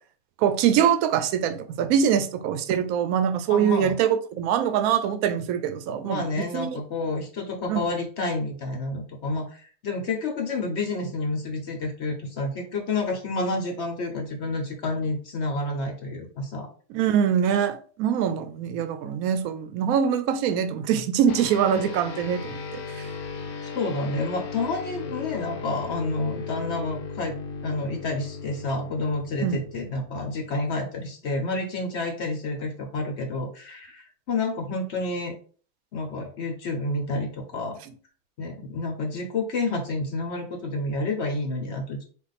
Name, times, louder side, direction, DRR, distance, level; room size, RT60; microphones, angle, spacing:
voice 1, 0.4-6.8 7.7-7.8 16.9-23.1 29.4-29.6, right 8 dB, 75° right, 1.0 m, -24 dB
voice 2, 3.5-4.0 6.0-16.7 23.6-27.4 27.6-35.3 35.9-37.8 38.4-42.1, left 2 dB, 55° left, 1.0 m, -29 dB
sound 1, 21.3-31.0, left 5 dB, 75° left, 1.2 m, -37 dB
4.3 x 2.5 x 4.1 m
omnidirectional pair, 1.6 m